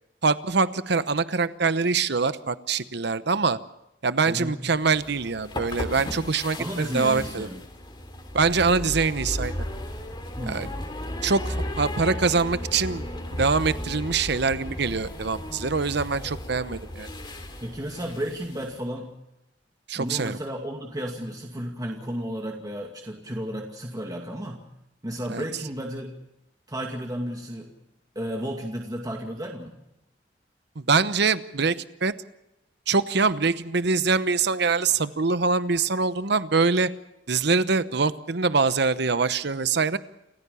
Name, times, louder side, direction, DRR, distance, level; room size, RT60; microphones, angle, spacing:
voice 1, 0.2-3.6 4.0-7.5 8.3-9.5 10.5-10.7 11.2-11.4 11.8-13.0 13.3-17.1 19.9-20.4 25.3-25.4 30.8-31.8 32.0-32.1 32.9-36.9 37.3-40.0, right 4 dB, 65° right, 14 dB, 0.9 m, -24 dB
voice 2, 4.3-4.6 6.6-7.6 10.4-10.8 17.6-19.1 20.0-24.6 25.0-26.1 26.7-27.7 28.2-29.7, equal, 20° right, 0 dB, 2.4 m, -33 dB
sound 1, 4.8-18.7, left 1 dB, 25° left, 3.1 m, -35 dB
29.0 x 15.0 x 7.1 m, 0.88 s
head